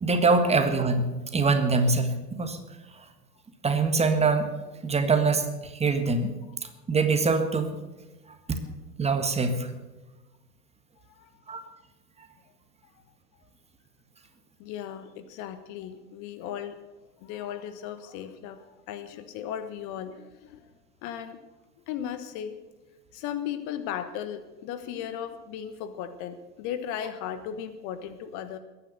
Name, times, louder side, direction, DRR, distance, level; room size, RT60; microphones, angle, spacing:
voice 1, 0.0-2.6 2.9-3.1 3.6-4.5 4.8-6.3 6.9-7.7 8.5-8.6 9.0-9.7 11.5-11.6, right 4 dB, 15° right, 7 dB, 1.6 m, -24 dB
voice 2, 11.0-11.4 14.6-16.8 17.2-20.7 21.0-21.4 21.9-22.6 23.1-28.6, left 9 dB, 35° left, 11 dB, 1.3 m, -36 dB
21.5 x 9.9 x 6.6 m, 1.2 s
figure-of-eight pair, 95°, 49 cm